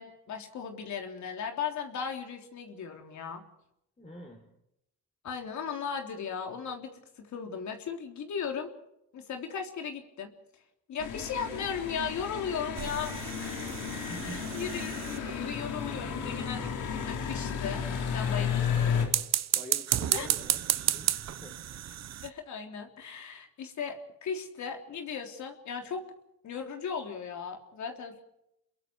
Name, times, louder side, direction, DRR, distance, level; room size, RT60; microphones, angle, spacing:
voice 1, 0.0-3.4 5.2-8.7 9.1-10.3 10.9-13.1 13.4-13.7 14.2-17.8 18.1-19.0 20.1-20.3 22.2-26.0 26.4-28.2, left 6 dB, 70° left, 4 dB, 3.6 m, -37 dB
voice 2, 4.0-4.4 14.1-14.6 18.3-18.7 19.5-21.6, equal, 20° left, 2 dB, 4.1 m, -46 dB
sound 1, 11.0-19.1, left 7 dB, 90° left, 4.1 m, -33 dB
sound 2, 12.7-15.6 19.0-22.3, right 11 dB, 60° right, 1.1 m, -32 dB
28.0 x 22.0 x 4.7 m, 0.80 s
cardioid pair, 90°, 30 cm